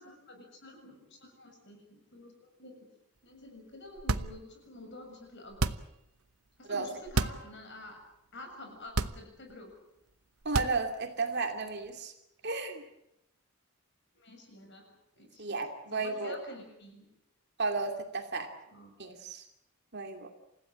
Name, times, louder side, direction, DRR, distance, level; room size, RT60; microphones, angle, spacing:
voice 1, 0.0-2.9 3.2-5.8 6.6-8.0 8.3-9.8 14.1-15.4 15.8-17.1 18.7-18.9, left 1 dB, 50° left, 4 dB, 7.1 m, -49 dB
sound 1, 4.0-4.7 5.5-6.1 7.0-7.5 7.9-8.0 8.9-9.6 10.4-11.1, right 3 dB, 80° right, 1.0 m, -31 dB
voice 2, 10.4-12.1 12.4-12.9 15.4-16.4 17.6-18.5 19.0-19.4 19.9-20.3, right 3 dB, 50° right, 5 dB, 2.6 m, -33 dB
28.5 x 16.0 x 8.7 m, 0.84 s
head